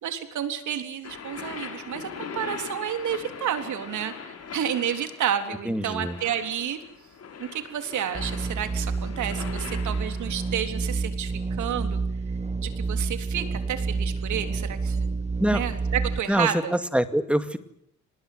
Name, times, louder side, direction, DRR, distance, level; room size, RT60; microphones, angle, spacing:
voice 1, 0.0-6.8 7.4-12.0 12.6-15.1 15.5-16.8, right 9 dB, 75° right, 8 dB, 3.7 m, -30 dB
sound 1, 1.0-10.6, left 6 dB, 55° left, 5.7 m, -41 dB
voice 2, 5.7-6.2 15.4-15.6 16.3-17.6, equal, 5° right, 10 dB, 2.2 m, -24 dB
sound 2, 8.1-16.2, right 4 dB, 20° right, 1.4 m, -29 dB
25.0 x 20.5 x 9.4 m, 0.74 s
cardioid pair, 90°, 30 cm